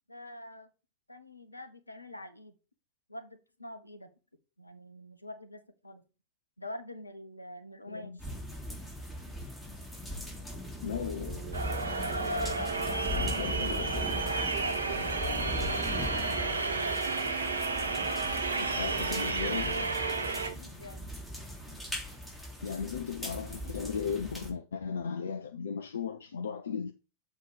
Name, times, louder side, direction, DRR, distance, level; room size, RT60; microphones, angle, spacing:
voice 1, 0.1-0.7 1.1-2.6 3.1-4.1 4.6-6.0 6.6-8.3 12.2-15.5 20.5-21.0, left 1 dB, 85° left, 0.9 m, -45 dB
sound 1, 8.2-24.5, left 1 dB, 5° left, 3.4 m, -39 dB
voice 2, 10.8-11.5 13.4-14.1 18.5-19.9 21.7-21.8 22.6-26.9, left 6 dB, 65° left, 0.6 m, -36 dB
sound 2, 10.9-20.6, right 15 dB, 50° right, 0.3 m, -43 dB
sound 3, 11.5-20.5, right 3 dB, 75° right, 0.9 m, -32 dB
7.3 x 4.5 x 4.9 m
figure-of-eight pair, 90°, 0 cm